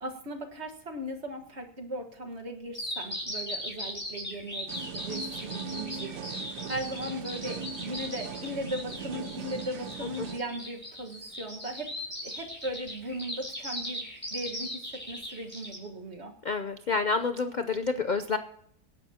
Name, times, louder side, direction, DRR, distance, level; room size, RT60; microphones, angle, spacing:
voice 1, 0.0-11.9 12.2-16.4, right 1 dB, 40° right, 3 dB, 1.8 m, -38 dB
Bird vocalization bird call bird song, 2.7-15.8, left 1 dB, 5° left, 6.0 m, -38 dB
sound 1, 4.7-10.4, right 6 dB, 75° right, 1.4 m, -39 dB
voice 2, 16.4-18.4, left 4 dB, 65° left, 9 dB, 0.4 m, -28 dB
26.0 x 11.0 x 2.9 m, 0.70 s
omnidirectional pair, 1.8 m